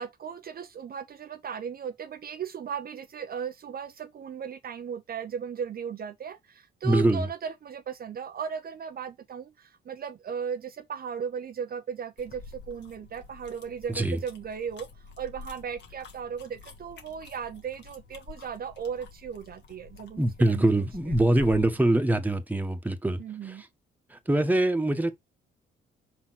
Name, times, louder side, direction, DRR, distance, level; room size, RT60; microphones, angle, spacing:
voice 1, 0.0-20.7 23.2-23.6, right 7 dB, 50° right, 0.7 m, -36 dB
voice 2, 6.8-7.3 13.9-14.2 20.2-23.2 23.4-23.5 24.1-25.1, right 1 dB, 10° right, 1.5 m, -24 dB
sound 1, 12.2-21.8, left 4 dB, 65° left, 1.7 m, -47 dB
5.6 x 4.2 x 4.2 m
cardioid pair, 90°, 20 cm